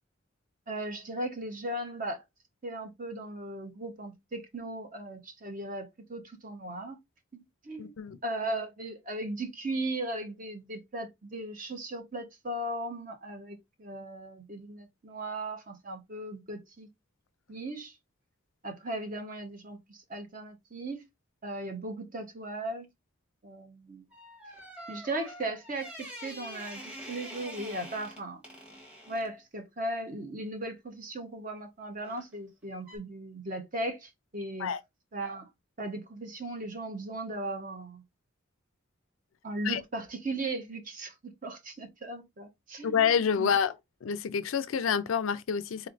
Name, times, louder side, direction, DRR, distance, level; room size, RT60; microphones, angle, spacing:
voice 1, 0.7-2.2 2.6-7.0 7.3-7.9 8.2-16.9 17.5-18.0 18.6-21.0 21.4-22.9 23.4-24.1 24.9-25.9 26.2-26.8 27.1-28.4 29.1-34.7 35.1-35.5 35.8-38.0 39.4-43.0 43.4-43.6, right 1 dB, 40° right, 1.0 m, -37 dB
voice 2, 7.8-8.2 34.6-34.8 39.6-39.8 42.8-43.7 44.0-45.9, left 7 dB, 75° left, 0.4 m, -28 dB
sound 1, 24.1-29.3 32.0-32.3 32.8-33.0, equal, 5° right, 1.1 m, -45 dB
4.0 x 3.2 x 2.5 m
head